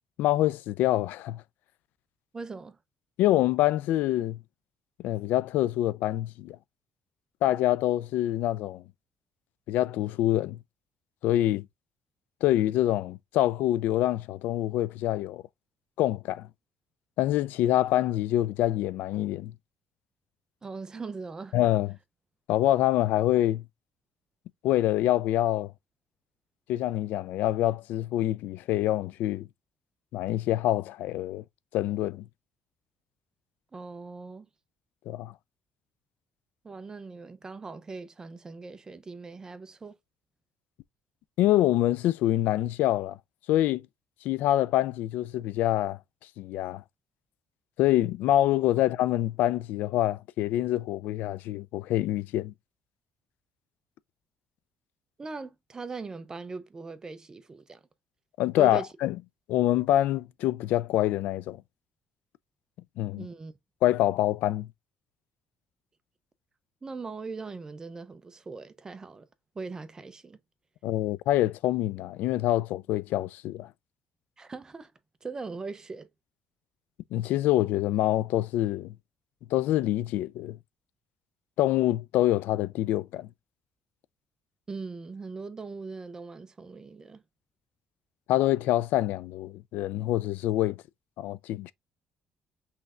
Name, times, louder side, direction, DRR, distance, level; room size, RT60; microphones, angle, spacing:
voice 1, 0.2-1.4 3.2-4.4 5.0-6.6 7.4-8.8 9.7-10.6 11.2-11.7 12.4-15.4 16.0-16.5 17.2-19.5 21.5-21.9 22.5-23.6 24.6-25.7 26.7-29.5 30.1-31.4 31.7-32.3 35.1-35.3 41.4-43.2 43.5-43.8 44.2-46.0 46.4-46.8 47.8-52.5 58.4-59.2 59.5-61.6 63.0-63.3 63.8-64.7 70.8-73.7 77.1-78.9 79.5-80.6 81.6-83.3 88.3-90.8 91.2-91.7, left 14 dB, 80° left, 0.3 m, -26 dB
voice 2, 2.3-2.8 20.6-21.6 33.7-34.5 36.6-40.0 55.2-57.8 58.6-58.9 63.1-63.5 66.8-69.3 69.5-70.4 74.4-74.9 75.2-76.1 84.7-87.2, right 4 dB, 20° right, 0.5 m, -40 dB
5.6 x 3.2 x 2.4 m
cardioid pair, 125°, 3 cm